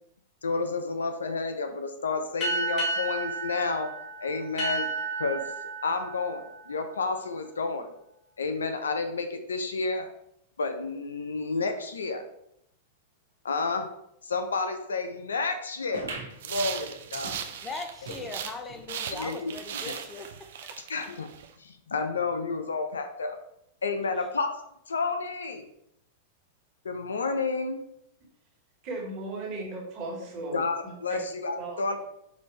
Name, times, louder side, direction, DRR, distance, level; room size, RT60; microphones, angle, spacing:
voice 1, 0.4-3.9 4.2-4.9 5.2-5.4 5.8-7.9 8.4-10.1 10.6-12.2 13.4-13.9 14.2-16.1 16.4-17.3 19.1-19.5 19.8-19.9 20.9-21.3 21.6-23.4 23.8-24.5 24.9-25.7 26.8-27.8 30.5-32.0, left 4 dB, 90° left, 0.5 m, -30 dB
sound 1, 2.4-7.5, right 3 dB, 40° left, 1.7 m, -33 dB
sound 2, 15.9-18.9 19.3-19.4 19.6-19.7 20.5-20.6, right 3 dB, 90° right, 1.0 m, -42 dB
sound 3, 16.4-18.6 18.9-21.5, right 8 dB, 70° right, 0.4 m, -38 dB
voice 2, 17.6-20.8 24.0-24.3, left 3 dB, 20° left, 0.6 m, -40 dB
voice 3, 28.8-31.2 31.5-32.0, right 2 dB, 40° right, 1.5 m, -37 dB
5.1 x 2.6 x 3.2 m
hypercardioid pair, 110°, 0 cm